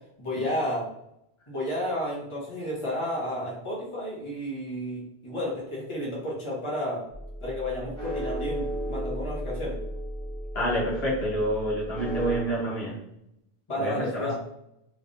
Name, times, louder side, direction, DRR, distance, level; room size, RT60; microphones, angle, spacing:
voice 1, 0.2-0.9 1.5-7.0 7.4-9.8 13.7-14.3, left 1 dB, 30° left, -6 dB, 1.2 m, -31 dB
sound 1, 7.1-12.4, equal, 5° left, 1.2 m, -34 dB
voice 2, 10.5-13.0 13.8-14.3, equal, 75° left, -5 dB, 1.4 m, -28 dB
3.3 x 3.2 x 2.6 m, 0.80 s
omnidirectional pair, 1.0 m